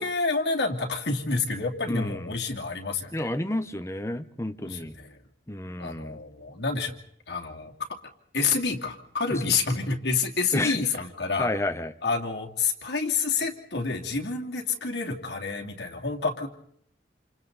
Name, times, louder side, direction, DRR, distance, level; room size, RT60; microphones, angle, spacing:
voice 1, 0.0-3.3 4.6-5.2 5.8-6.9 7.3-7.7 8.3-11.5 12.0-16.5, left 4 dB, 70° left, 1 dB, 2.8 m, -28 dB
voice 2, 1.9-2.3 3.1-4.9 5.5-6.2 9.4-9.5 10.5-10.8 11.4-11.9, left 1 dB, 15° left, 9 dB, 0.9 m, -30 dB
28.5 x 28.0 x 4.1 m, 0.65 s
head